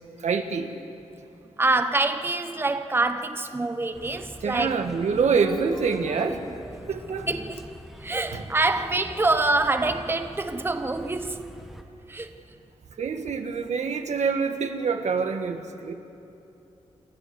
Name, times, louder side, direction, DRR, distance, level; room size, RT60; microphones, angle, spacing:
voice 1, 0.2-0.7 4.4-6.4 6.9-7.3 8.3-8.4 13.0-15.9, right 5 dB, 80° right, 1.6 m, -26 dB
voice 2, 1.6-4.7 7.3-7.6 8.0-11.5 12.1-12.3, right 2 dB, 20° right, 0.9 m, -25 dB
sound 1, 3.9-11.8, equal, ahead, 1.5 m, -44 dB
29.0 x 12.5 x 7.9 m
wide cardioid pair, 105°, 12 cm